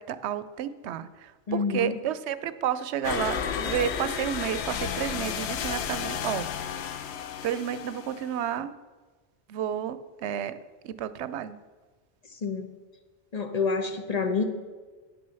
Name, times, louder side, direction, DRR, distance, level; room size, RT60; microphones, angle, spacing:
voice 1, 0.0-6.5 6.9-7.1 7.4-8.7 9.5-10.6 10.8-11.6, right 9 dB, 90° right, 14 dB, 0.9 m, -31 dB
voice 2, 1.5-1.9 12.4-12.7 13.3-14.4, left 5 dB, 40° left, 6 dB, 0.8 m, -27 dB
sound 1, 3.0-8.6, left 8 dB, 80° left, 0.9 m, -32 dB
9.2 x 6.3 x 6.8 m, 1.3 s
omnidirectional pair, 1.1 m